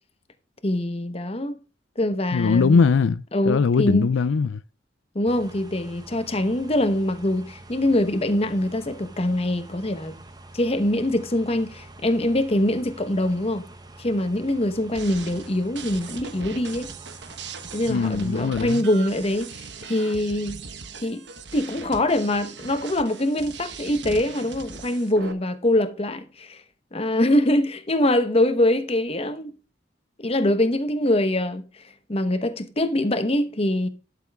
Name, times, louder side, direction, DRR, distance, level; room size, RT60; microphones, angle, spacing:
voice 1, 0.6-1.6 2.0-2.8 3.3-4.1 5.1-10.2 10.5-13.6 14.0-16.9 17.7-20.6 21.0-21.2 21.5-26.6 26.9-29.5 30.2-31.6 32.1-33.9, left 1 dB, 30° left, 1.0 m, -23 dB
voice 2, 2.3-4.6 17.9-18.8, left 5 dB, 85° left, 0.4 m, -21 dB
sound 1, 5.3-18.5, right 2 dB, 20° right, 1.0 m, -46 dB
sound 2, 14.9-25.3, right 5 dB, 60° right, 1.2 m, -40 dB
12.0 x 6.9 x 3.5 m
head